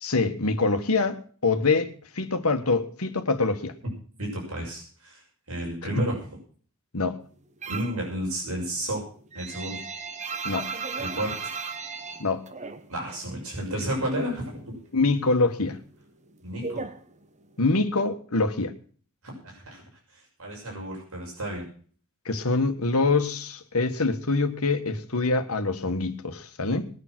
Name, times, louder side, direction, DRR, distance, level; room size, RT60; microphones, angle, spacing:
voice 1, 0.0-3.7 6.0-6.1 6.9-7.2 10.5-10.7 12.2-12.4 14.9-15.8 17.6-18.7 22.3-26.9, left 3 dB, 75° left, 8 dB, 1.6 m, -25 dB
voice 2, 4.2-5.2 5.5-6.2 7.7-9.0 9.3-9.8 11.0-11.6 12.9-14.8 16.4-16.9 19.2-19.8 20.4-21.6, right 1 dB, 70° right, -2 dB, 6.4 m, -32 dB
sound 1, 7.6-8.1 8.4-13.3 13.5-14.6 14.9-17.7, right 5 dB, 35° right, 1.1 m, -36 dB
21.0 x 7.0 x 6.1 m, 0.44 s
head